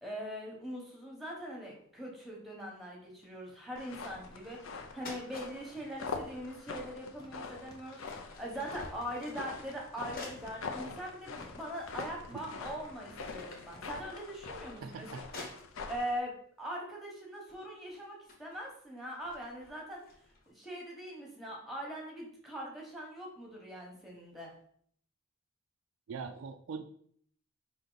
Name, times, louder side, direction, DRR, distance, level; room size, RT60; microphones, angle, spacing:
voice 1, 0.0-15.1 15.9-20.0 20.5-24.5, equal, ahead, -2 dB, 1.0 m, -42 dB
sound 1, 1.8-1.9 2.1-2.2 3.1-13.8, left 1 dB, 20° left, 0.7 m, -57 dB
sound 2, 3.8-16.2, left 4 dB, 70° left, 0.5 m, -44 dB
sound 3, 4.3-4.7 5.0-5.5 7.1-7.3 7.8-10.6 11.2-11.3 12.1-12.6 12.9-16.1 16.9-17.2 17.5-20.5, left 2 dB, 45° left, 1.1 m, -51 dB
voice 2, 14.8-15.2 26.1-27.0, right 5 dB, 65° right, 8 dB, 0.3 m, -42 dB
5.0 x 2.7 x 3.9 m, 0.63 s
head